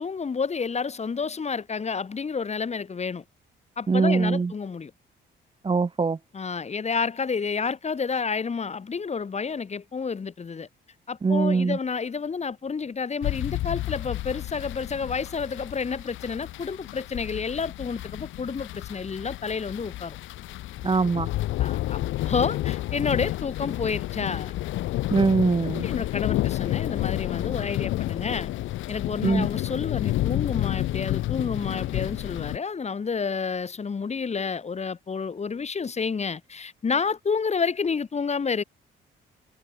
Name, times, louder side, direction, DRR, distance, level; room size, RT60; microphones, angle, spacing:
voice 1, 0.0-3.2 3.8-4.9 6.3-10.7 11.1-20.2 21.6-22.0 22.3-24.5 25.6-28.5 28.9-38.6, left 5 dB, 35° left, 1.8 m, -30 dB
voice 2, 3.9-4.5 5.6-6.2 11.2-11.8 20.8-21.3 25.1-25.9 29.2-29.5, right 4 dB, 25° right, 1.1 m, -22 dB
sound 1, 13.2-32.6, left 15 dB, 75° left, 0.6 m, -30 dB
cardioid pair, 90°, 20 cm